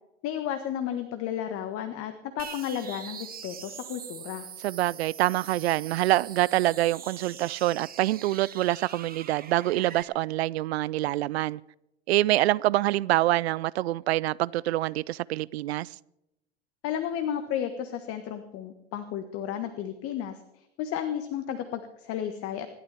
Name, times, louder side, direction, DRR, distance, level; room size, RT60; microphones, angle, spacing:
voice 1, 0.2-4.5 16.8-22.7, left 9 dB, 45° left, 1.5 m, -33 dB
sound 1, 2.4-10.0, right 8 dB, 25° right, 1.8 m, -43 dB
voice 2, 4.6-11.6 12.1-15.9, right 16 dB, 70° right, 0.5 m, -26 dB
27.0 x 12.5 x 3.5 m
hypercardioid pair, 85°, 33 cm